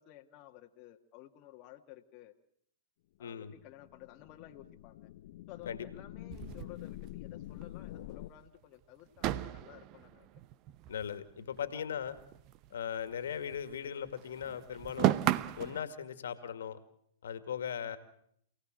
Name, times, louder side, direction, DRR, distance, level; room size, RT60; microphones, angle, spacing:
voice 1, 0.0-2.3 3.2-5.1 5.5-10.3, left 14 dB, 40° left, 3 dB, 1.7 m, -54 dB
voice 2, 3.2-3.5 5.7-5.9 10.9-12.2 12.7-15.2 15.5-16.8 17.2-18.0, left 8 dB, 80° left, 11 dB, 2.1 m, -38 dB
sound 1, 3.5-8.3, left 15 dB, 60° left, 1.0 m, -47 dB
sound 2, 6.3-7.6 8.0-8.1 8.4-8.5 9.2-11.7 11.9-13.8 14.0-15.8, right 15 dB, 40° right, 0.8 m, -35 dB
28.0 x 17.5 x 7.8 m, 0.69 s
hypercardioid pair, 115°, 0 cm